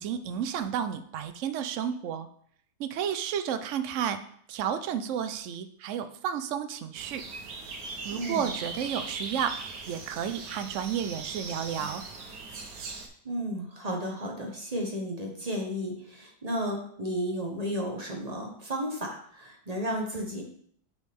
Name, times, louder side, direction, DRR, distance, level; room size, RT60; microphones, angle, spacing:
voice 1, 0.0-2.3 2.8-4.2 4.5-7.2 8.0-9.6 9.9-12.0, right 8 dB, 65° right, 10 dB, 0.8 m, -32 dB
sound 1, 6.9-13.1, right 4 dB, 80° right, 1.7 m, -39 dB
voice 2, 8.1-8.5 13.2-20.4, equal, 25° right, 0 dB, 1.1 m, -33 dB
8.4 x 4.8 x 3.5 m, 0.63 s
omnidirectional pair, 1.8 m